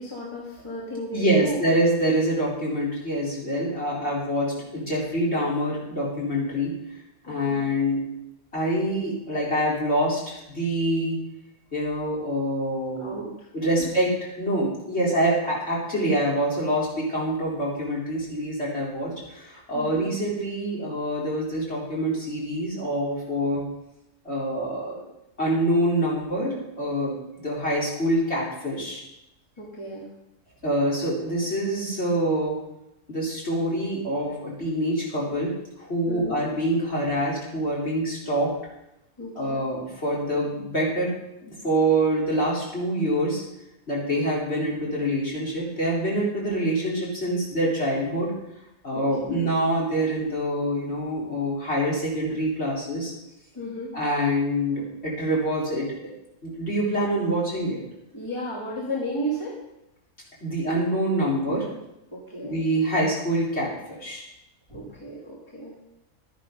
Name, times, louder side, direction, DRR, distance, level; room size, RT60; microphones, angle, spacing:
voice 1, 0.0-1.6 7.3-7.6 13.0-13.5 19.7-20.0 29.6-30.1 36.1-36.4 39.2-39.6 48.9-49.4 53.6-53.9 58.1-59.6 62.1-62.6 64.7-65.7, equal, 20° left, -5 dB, 2.5 m, -34 dB
voice 2, 1.1-6.7 7.2-8.0 8.5-11.2 11.7-13.1 13.5-23.7 24.2-25.0 25.4-29.0 30.6-32.6 33.1-38.5 39.4-41.1 41.4-43.4 43.9-48.3 48.8-53.1 53.9-55.9 56.4-57.8 60.4-61.7 62.4-64.3, right 1 dB, 45° left, -5 dB, 4.2 m, -25 dB
12.0 x 10.5 x 5.3 m, 0.88 s
omnidirectional pair, 1.6 m